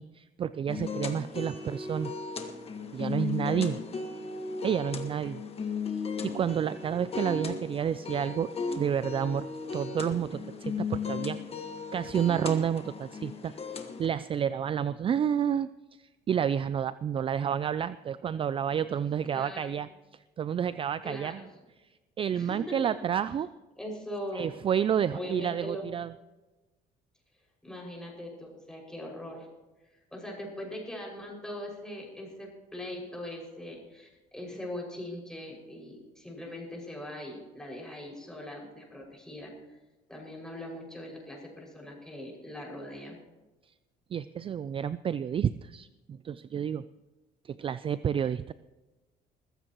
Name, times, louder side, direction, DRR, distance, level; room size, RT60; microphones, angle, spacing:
voice 1, 0.0-2.1 2.9-3.8 4.6-5.4 6.2-8.5 8.8-9.5 9.7-13.5 14.0-15.7 16.0-21.4 22.2-23.5 24.3-26.1 44.1-46.8 47.4-48.5, right 8 dB, 35° right, 15 dB, 0.3 m, -30 dB
sound 1, 0.7-14.1, left 5 dB, 35° left, 1.5 m, -36 dB
voice 2, 19.3-19.8 21.0-21.4 22.3-22.8 23.8-24.4 25.0-25.9 27.6-29.5 29.9-39.8 40.1-43.2, left 1 dB, 5° left, -2 dB, 5.9 m, -41 dB
21.0 x 15.0 x 3.0 m, 1.1 s
cardioid pair, 110°, 17 cm